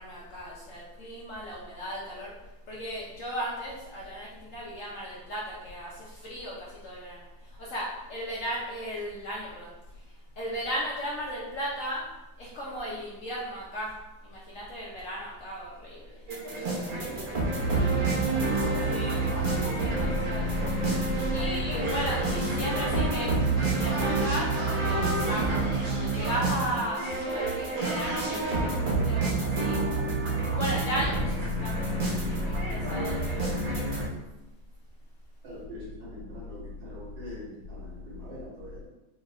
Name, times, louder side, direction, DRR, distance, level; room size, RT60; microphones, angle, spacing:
voice 1, 0.0-2.3 2.7-5.9 6.2-6.6 6.8-7.2 7.6-9.7 10.4-12.1 12.4-14.0 14.2-16.1 16.6-17.3 18.9-19.3 19.8-20.6 21.3-27.0 27.3-29.3 29.6-29.8 30.5-33.5, equal, 65° left, -5 dB, 0.8 m, -36 dB
sound 1, 16.3-34.0, right 2 dB, 50° right, 0.6 m, -28 dB
voice 2, 16.5-18.4 35.4-38.9, equal, 75° right, -9 dB, 2.3 m, -44 dB
4.4 x 3.0 x 2.4 m, 1.0 s
omnidirectional pair, 2.0 m